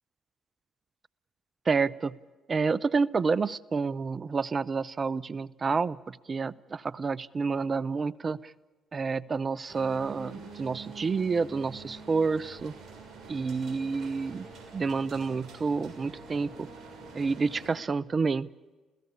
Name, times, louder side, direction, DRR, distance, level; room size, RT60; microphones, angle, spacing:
voice 1, 1.7-2.2 2.5-8.5 8.9-12.7 13.3-14.5 14.7-16.7 17.1-18.5, right 4 dB, 40° right, 19 dB, 0.8 m, -29 dB
sound 1, 9.7-17.7, right 4 dB, 60° right, 6.6 m, -46 dB
29.0 x 16.5 x 8.5 m, 1.3 s
hypercardioid pair, 55°, 0 cm